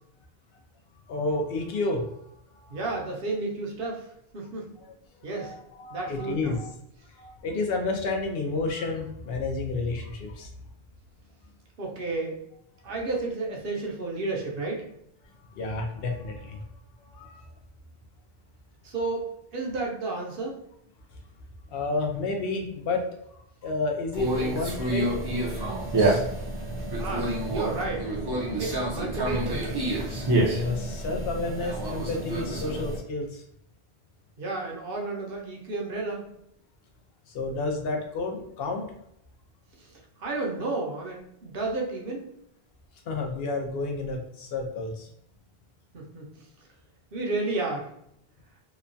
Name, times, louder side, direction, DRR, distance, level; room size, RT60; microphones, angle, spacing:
voice 1, 1.1-2.3 2.6-2.8 5.3-6.7 7.1-10.5 15.5-16.6 17.0-17.4 21.7-23.0 23.3-25.1 30.5-33.4 37.3-38.9 43.1-45.1, left 3 dB, 70° left, 2 dB, 0.8 m, -31 dB
voice 2, 2.7-4.1 4.3-4.7 5.2-5.5 5.9-6.6 11.8-12.3 12.8-14.8 18.8-20.6 27.0-28.1 28.6-29.8 34.4-36.2 40.2-42.3 45.9-46.3 47.1-47.9, right 3 dB, 65° right, -1 dB, 0.8 m, -32 dB
Conversation, 24.1-33.0, right 1 dB, 35° right, 0.4 m, -28 dB
2.9 x 2.2 x 2.5 m, 0.75 s
omnidirectional pair, 1.1 m